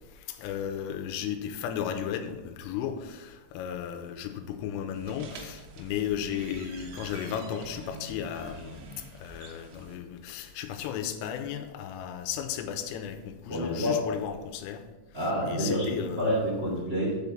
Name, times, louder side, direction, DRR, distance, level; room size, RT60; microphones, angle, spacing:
voice 1, 0.3-8.8 9.1-14.8 15.5-16.4, left 9 dB, 90° left, 7 dB, 3.3 m, -35 dB
sound 1, 4.9-10.0, right 3 dB, 90° right, 3.8 m, -46 dB
voice 2, 13.5-14.0 15.1-17.2, equal, 65° right, -5 dB, 0.6 m, -28 dB
8.3 x 4.3 x 7.1 m, 1.1 s
omnidirectional pair, 5.9 m